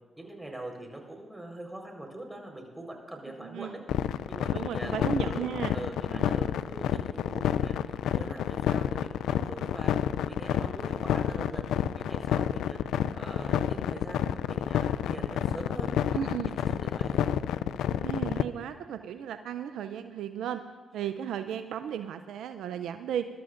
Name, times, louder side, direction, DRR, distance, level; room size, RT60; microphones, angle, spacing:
voice 1, 0.2-3.8 4.3-9.9 10.2-12.8 13.1-16.3 16.6-17.3, right 1 dB, 15° right, 1 dB, 4.2 m, -43 dB
voice 2, 3.4-3.8 4.5-5.7 6.1-6.4 16.1-16.5 18.0-20.6 20.9-23.3, right 9 dB, 80° right, 9 dB, 0.5 m, -35 dB
sound 1, 3.9-18.4, left 10 dB, 80° left, 0.3 m, -29 dB
22.5 x 12.5 x 2.5 m, 1.5 s
supercardioid pair, 50°, 0 cm